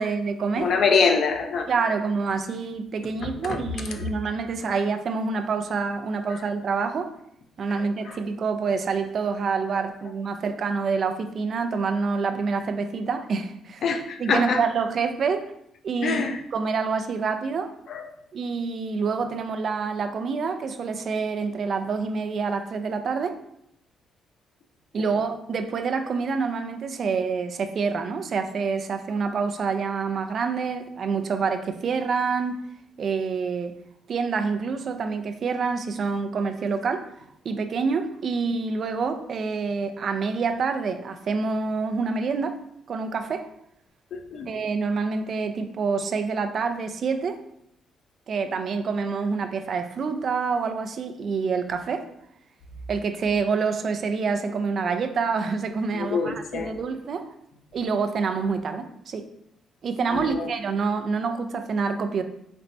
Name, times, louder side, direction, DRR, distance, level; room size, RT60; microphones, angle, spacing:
voice 1, 0.0-0.7 1.7-7.1 7.6-13.8 14.2-15.5 15.8-16.2 16.5-17.7 18.3-23.3 24.9-32.6 33.0-33.7 34.1-37.1 37.4-42.6 42.9-43.5 44.5-47.4 48.3-52.1 52.9-57.3 57.7-59.3 59.8-62.2, right 5 dB, 55° right, 8 dB, 0.4 m, -27 dB
voice 2, 0.6-1.7 3.4-3.6 6.3-6.4 7.7-8.2 13.8-14.6 16.0-16.4 17.9-18.0 44.1-44.5 55.9-56.7 60.1-60.5, left 5 dB, 65° left, 5 dB, 0.5 m, -25 dB
4.2 x 3.2 x 2.6 m, 0.74 s
cardioid pair, 90°, 0 cm